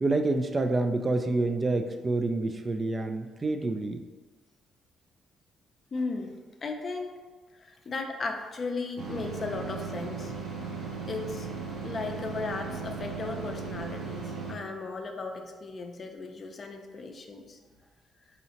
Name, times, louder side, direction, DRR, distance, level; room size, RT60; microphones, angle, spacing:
voice 1, 0.0-4.0, right 2 dB, 30° right, 6 dB, 0.3 m, -27 dB
voice 2, 5.9-6.3 6.6-7.2 7.6-10.3 11.1-11.5 11.8-17.6, left 3 dB, 45° left, 4 dB, 0.5 m, -36 dB
sound 1, 9.0-14.5, right 4 dB, 65° right, 0.6 m, -37 dB
4.1 x 2.8 x 2.8 m, 1.3 s
cardioid pair, 90°, 0 cm